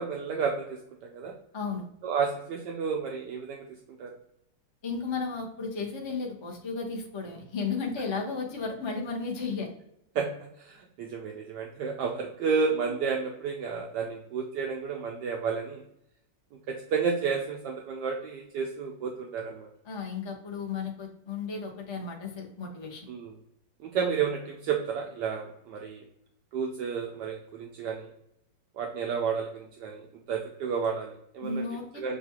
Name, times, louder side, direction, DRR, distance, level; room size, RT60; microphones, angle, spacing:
voice 1, 0.0-1.3 2.0-3.6 4.0-4.1 10.1-15.8 16.7-19.7 23.1-23.3 23.8-26.0 26.5-28.1 28.7-30.0 30.3-31.6 32.0-32.2, right 6 dB, 75° right, 1 dB, 1.1 m, -31 dB
voice 2, 1.5-1.8 4.8-9.7 19.9-23.1 31.4-32.2, left 4 dB, 45° left, -1 dB, 0.3 m, -34 dB
6.7 x 2.4 x 2.8 m, 0.75 s
omnidirectional pair, 2.0 m